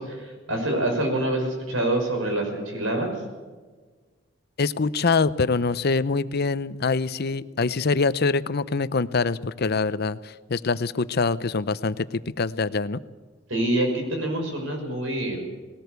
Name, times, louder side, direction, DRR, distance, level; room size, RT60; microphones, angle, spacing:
voice 1, 0.0-3.1 13.5-15.5, right 1 dB, 90° right, 3 dB, 6.0 m, -26 dB
voice 2, 4.6-13.0, left 4 dB, 55° left, 15 dB, 0.7 m, -24 dB
19.5 x 18.5 x 8.1 m, 1.4 s
head